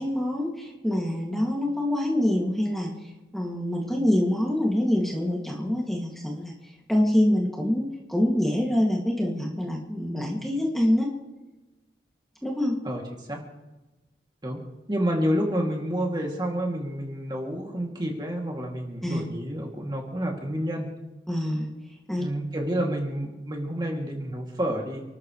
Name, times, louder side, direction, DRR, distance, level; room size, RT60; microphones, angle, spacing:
voice 1, 0.0-11.1 12.4-12.8 19.0-19.2 21.3-21.7 22.1-22.2, left 1 dB, ahead, -3 dB, 2.4 m, -25 dB
voice 2, 14.9-20.9 22.2-25.1, equal, 25° right, 0 dB, 2.7 m, -29 dB
29.5 x 13.0 x 3.3 m, 1.1 s
head